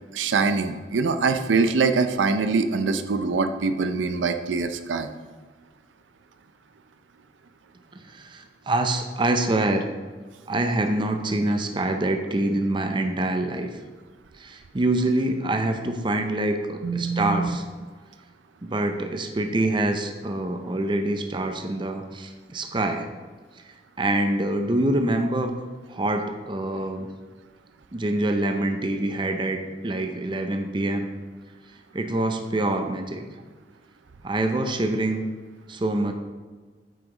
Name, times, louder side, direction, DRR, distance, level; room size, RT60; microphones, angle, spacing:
voice 1, 0.1-5.1 16.8-17.5, right 4 dB, 85° right, 9 dB, 0.5 m, -23 dB
voice 2, 8.0-9.9 10.5-13.7 14.4-17.6 18.6-23.1 23.7-25.5 25.9-27.1 27.9-29.6 29.8-31.1 31.9-33.2 34.2-35.2 35.7-36.1, right 1 dB, 25° right, 6 dB, 0.5 m, -25 dB
8.8 x 4.9 x 3.9 m, 1.4 s
head